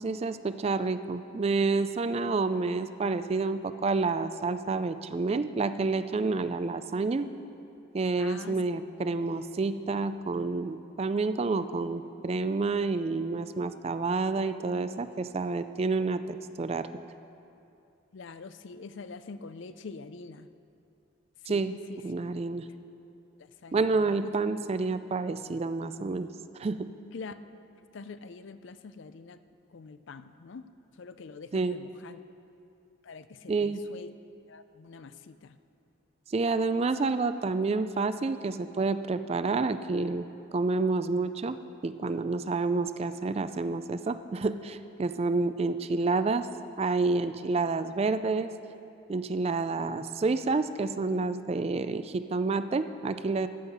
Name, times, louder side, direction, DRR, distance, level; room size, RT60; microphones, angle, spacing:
voice 1, 0.0-7.3 7.9-16.9 21.5-22.6 23.7-26.3 26.6-26.9 31.5-31.8 33.5-33.9 36.3-40.3 40.5-41.6 41.8-46.5 46.8-48.5 49.1-53.5, right 3 dB, 30° right, 12 dB, 0.3 m, -29 dB
voice 2, 8.2-8.6 18.1-20.5 21.4-21.6 21.9-22.0 23.4-24.3 27.1-27.4 27.9-29.4 29.7-30.6 31.0-32.2 33.0-34.1 34.5-35.6, left 4 dB, 60° left, 12 dB, 0.4 m, -45 dB
14.0 x 5.6 x 7.9 m, 2.6 s
head